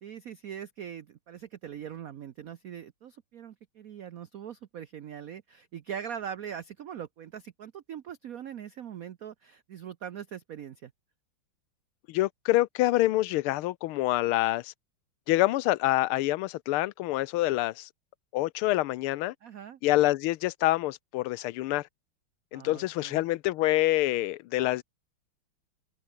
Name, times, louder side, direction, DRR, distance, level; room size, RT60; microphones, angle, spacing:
voice 1, 0.0-10.9 19.4-19.8 22.5-23.2, right 9 dB, 60° right, 0.9 m, -41 dB
voice 2, 12.1-14.7 15.3-17.9 18.3-19.3 19.8-21.9 22.5-24.8, left 17 dB, 85° left, 1.6 m, -26 dB
omnidirectional pair, 2.3 m